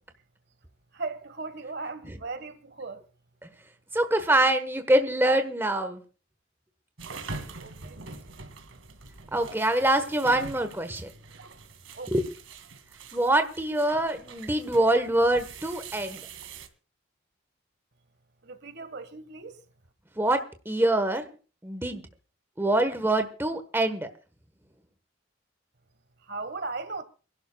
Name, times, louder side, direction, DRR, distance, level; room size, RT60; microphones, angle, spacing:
voice 1, 0.9-3.0 7.6-8.0 11.9-12.1 18.4-19.6 26.3-27.0, right 3 dB, 55° right, 1.5 m, -37 dB
voice 2, 3.9-6.0 9.3-11.1 12.1-12.2 13.1-16.2 20.2-21.3 21.6-22.0 22.6-24.1, right 1 dB, 10° right, 1.3 m, -25 dB
sound 1, 7.0-16.7, right 4 dB, 90° right, 2.3 m, -44 dB
28.0 x 12.0 x 2.3 m
head